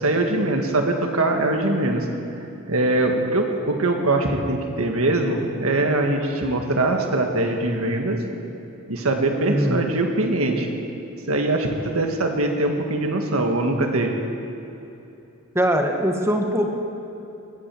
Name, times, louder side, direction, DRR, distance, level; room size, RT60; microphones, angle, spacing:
voice 1, 0.0-2.1 2.7-8.2 8.9-10.7 11.3-14.2, right 2 dB, 75° right, 3 dB, 1.7 m, -22 dB
voice 2, 9.5-9.8 15.5-16.8, equal, 10° right, 3 dB, 1.4 m, -21 dB
21.0 x 8.8 x 7.7 m, 2.9 s
head